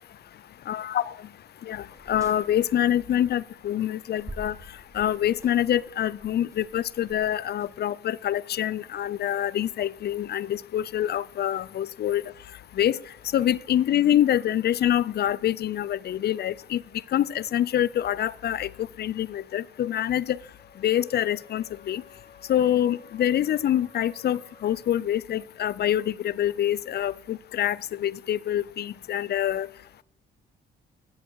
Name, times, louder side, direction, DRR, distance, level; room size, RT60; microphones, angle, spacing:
voice 1, 0.7-1.2 1.6-4.6 4.9-12.2 12.7-13.0 13.3-16.8 17.1-20.4 20.8-22.0 22.5-29.7, left 11 dB, 55° left, 22 dB, 0.5 m, -26 dB
sound 1, 1.9-3.5 3.8-7.8, right 1 dB, 15° right, 3.1 m, -46 dB
Wind instrument woodwind instrument, 20.4-24.9, left 5 dB, 20° left, 5.3 m, -54 dB
14.5 x 10.0 x 4.7 m, 0.68 s
cardioid pair, 90°, 20 cm